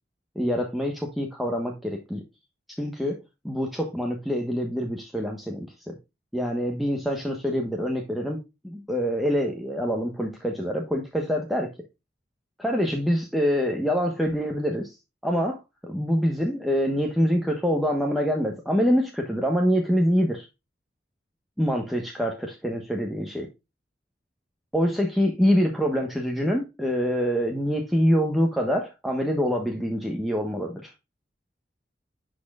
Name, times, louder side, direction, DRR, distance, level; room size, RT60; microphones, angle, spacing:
voice 1, 0.3-2.2 2.8-3.2 3.4-6.0 6.3-11.7 12.6-15.0 15.2-20.5 21.6-23.4 24.7-30.9, equal, ahead, 1.1 m, -25 dB
11.0 x 4.4 x 2.4 m
head